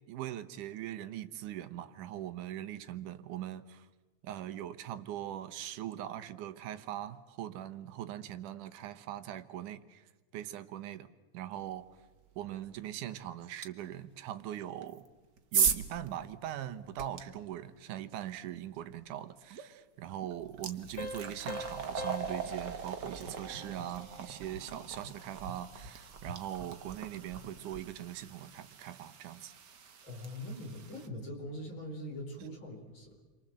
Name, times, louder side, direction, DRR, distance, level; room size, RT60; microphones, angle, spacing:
voice 1, 0.1-3.9 4.2-11.1 11.3-11.9 12.4-15.0 15.5-29.5 32.4-32.5, right 12 dB, 90° right, 2.6 m, -41 dB
sound 1, 13.6-13.7 14.8-17.2 19.5-19.7 20.1-31.1, right 7 dB, 45° right, 1.5 m, -38 dB
Piano, 21.0-24.3, left 2 dB, 60° left, 0.9 m, -44 dB
voice 2, 30.0-33.1, left 1 dB, 40° left, 5.4 m, -42 dB
29.5 x 24.0 x 7.6 m
omnidirectional pair, 3.5 m